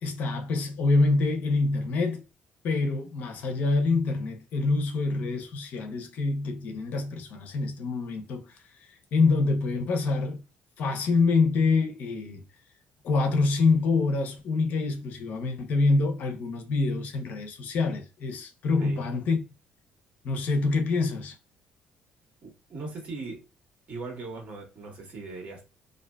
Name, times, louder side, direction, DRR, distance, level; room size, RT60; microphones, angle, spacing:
voice 1, 0.0-2.2 2.6-8.4 9.1-10.4 10.8-12.4 13.0-19.4 20.2-21.3, left 3 dB, 70° left, 0.6 m, -26 dB
voice 2, 18.8-19.1 22.4-23.4 23.9-25.6, right 3 dB, 55° right, 1.3 m, -39 dB
2.5 x 2.3 x 2.2 m
cardioid pair, 105°, 3 cm